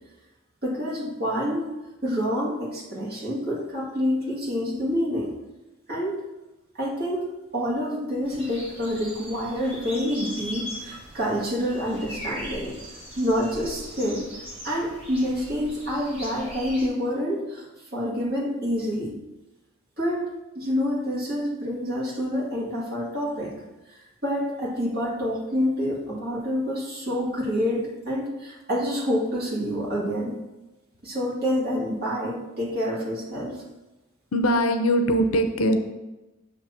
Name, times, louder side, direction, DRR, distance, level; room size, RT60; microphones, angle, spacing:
voice 1, 0.6-1.6 2.0-5.3 5.9-6.2 6.8-12.7 13.2-14.2 14.6-17.7 17.9-19.1 20.0-23.5 24.2-30.3 31.0-33.6, equal, 45° right, -6 dB, 2.1 m, -27 dB
sound 1, 8.2-16.9, equal, 25° right, 1.6 m, -40 dB
voice 2, 34.3-35.8, equal, 75° left, 7 dB, 0.6 m, -21 dB
7.1 x 3.0 x 5.9 m, 1.0 s
head